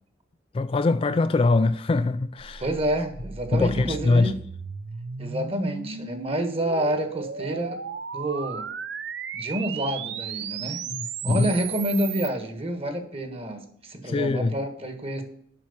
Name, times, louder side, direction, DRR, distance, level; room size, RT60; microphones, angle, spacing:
voice 1, 0.5-2.6 3.5-4.3 10.9-11.5 14.0-14.5, left 3 dB, 30° left, 0.3 m, -23 dB
sound 1, 2.4-12.3, right 6 dB, 60° right, 0.6 m, -35 dB
voice 2, 2.6-4.3 5.2-7.8 8.1-8.7 9.3-10.8 11.2-15.2, right 1 dB, 30° right, 1.4 m, -28 dB
7.5 x 6.0 x 7.0 m
head